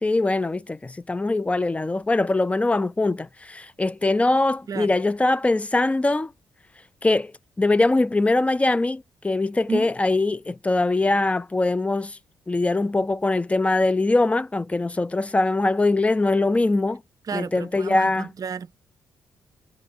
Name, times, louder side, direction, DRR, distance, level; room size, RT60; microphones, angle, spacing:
voice 1, 0.0-6.3 7.0-7.3 7.6-12.2 12.5-17.0 17.3-18.3, left 2 dB, 15° left, 0.3 m, -22 dB
voice 2, 17.3-18.8, right 6 dB, 45° right, 0.5 m, -32 dB
3.7 x 2.3 x 2.5 m
cardioid pair, 65°, 8 cm